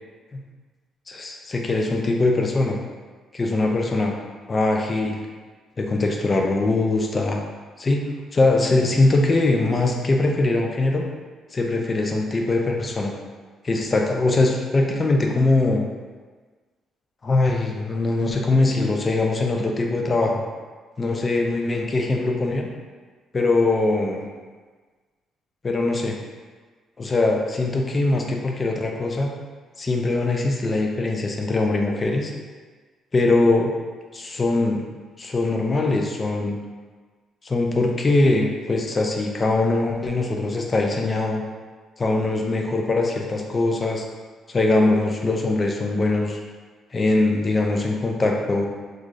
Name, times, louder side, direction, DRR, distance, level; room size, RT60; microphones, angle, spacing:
voice 1, 1.1-2.8 3.3-4.2 4.5-5.2 5.8-7.4 7.8-11.1 11.5-13.1 13.6-15.8 17.2-20.4 21.0-22.7 23.3-24.3 25.6-26.2 27.0-29.3 29.8-32.3 33.1-33.7 34.1-34.8 35.2-36.6 37.4-41.4 42.0-44.0 44.5-46.4 46.9-48.7, left 2 dB, 30° left, 1 dB, 0.4 m, -22 dB
3.1 x 2.4 x 2.5 m, 1.4 s
cardioid pair, 110°, 0 cm